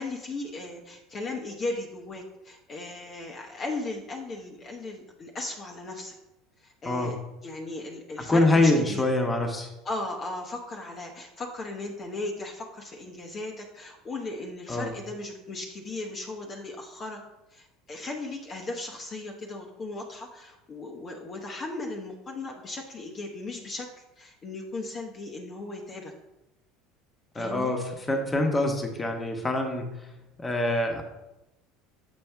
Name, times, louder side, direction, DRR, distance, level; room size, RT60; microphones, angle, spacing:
voice 1, 0.0-6.1 6.6-9.0 9.8-17.2 17.5-23.9 24.2-26.1 27.3-27.7, left 2 dB, 40° left, 1 dB, 1.0 m, -37 dB
voice 2, 8.2-9.7 14.7-14.9 27.3-29.9 30.4-31.0, left 2 dB, 20° left, 3 dB, 1.3 m, -25 dB
7.3 x 5.1 x 3.5 m, 0.95 s
supercardioid pair, 90°, 0 cm